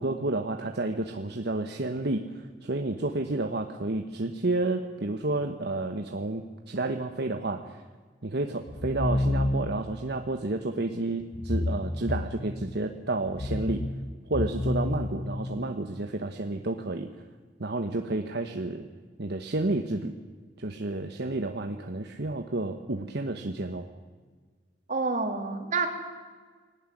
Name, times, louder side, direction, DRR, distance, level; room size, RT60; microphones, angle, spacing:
voice 1, 0.0-7.8 8.2-13.8 14.3-17.1 17.6-18.8 19.2-20.1 20.6-23.9, right 2 dB, 60° right, 5 dB, 1.2 m, -30 dB
sound 1, 8.7-10.0 11.3-12.8 13.3-15.8, left 1 dB, 35° left, 0.9 m, -30 dB
voice 2, 24.9-25.9, right 4 dB, 45° right, 4 dB, 3.1 m, -28 dB
21.5 x 17.5 x 9.9 m, 1.5 s
head